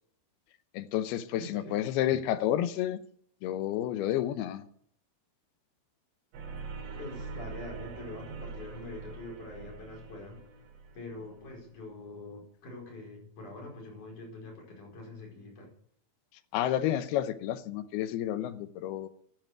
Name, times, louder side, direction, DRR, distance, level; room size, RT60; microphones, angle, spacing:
voice 1, 0.7-3.0 3.4-4.6 16.5-19.1, left 12 dB, 85° left, 2.8 m, -30 dB
voice 2, 1.4-1.7 6.9-10.4 10.9-15.7, left 2 dB, 50° left, 6.5 m, -44 dB
sound 1, 6.3-11.6, right 4 dB, 85° right, 4.3 m, -43 dB
12.0 x 11.0 x 7.9 m
omnidirectional pair, 4.5 m